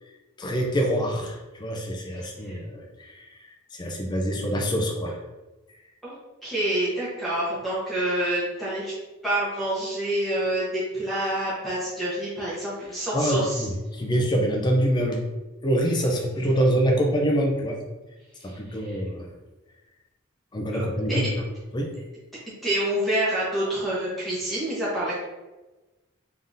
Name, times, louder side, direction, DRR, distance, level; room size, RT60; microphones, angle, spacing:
voice 1, 0.4-5.2 13.1-15.2 15.6-17.8 18.4-19.3 20.5-21.3 21.7-21.9, equal, 20° left, 1 dB, 0.5 m, -25 dB
voice 2, 6.4-8.9 9.2-13.7 18.4-19.0 20.7-21.3 22.6-25.3, right 1 dB, ahead, -9 dB, 1.0 m, -27 dB
3.7 x 3.5 x 2.6 m, 1.1 s
head